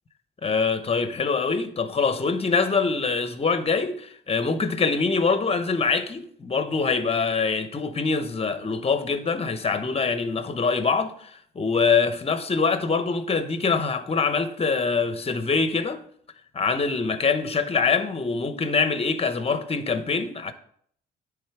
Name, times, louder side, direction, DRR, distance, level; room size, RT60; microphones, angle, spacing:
voice 1, 0.4-16.0 16.5-20.5, left 4 dB, 30° left, 0.8 m, -24 dB
10.5 x 3.7 x 4.7 m
cardioid pair, 90°, 20 cm